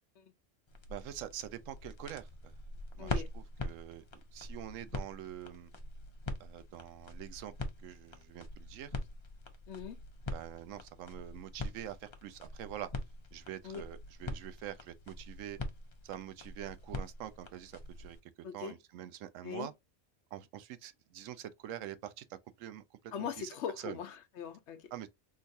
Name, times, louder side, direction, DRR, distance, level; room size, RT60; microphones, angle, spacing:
sound 1, 0.7-18.2, left 2 dB, 45° left, 0.3 m, -43 dB
voice 1, 0.9-2.5 3.0-4.0 4.3-5.7 6.4-7.5 7.8-8.9 10.3-12.9 13.3-15.6 16.0-18.2 18.5-19.7 20.3-23.5 23.8-24.0 24.9-25.1, right 11 dB, 85° right, 0.9 m, -45 dB
voice 2, 3.0-3.3 9.7-10.0 13.6-13.8 18.4-18.8 19.4-19.7 23.1-24.9, left 7 dB, 65° left, 0.9 m, -41 dB
3.8 x 2.6 x 2.6 m
omnidirectional pair, 1.3 m